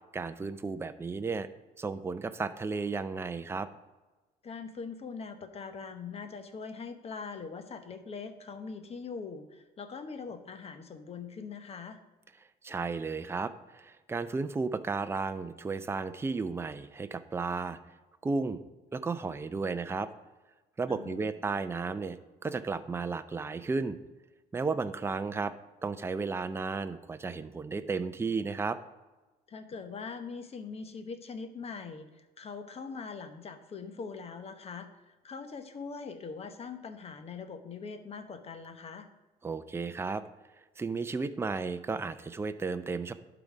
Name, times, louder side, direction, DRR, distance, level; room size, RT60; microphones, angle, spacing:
voice 1, 0.1-1.5 1.8-3.7 12.6-17.8 18.2-18.6 18.9-20.1 20.8-22.2 22.4-24.0 24.5-25.5 25.8-28.8 39.4-40.2 40.8-43.1, right 4 dB, 15° right, 10 dB, 0.5 m, -33 dB
voice 2, 4.4-12.0 20.9-21.3 29.5-39.1, left 5 dB, 35° left, 8 dB, 1.0 m, -42 dB
11.5 x 4.0 x 4.9 m, 1.2 s
cardioid pair, 110°, 17 cm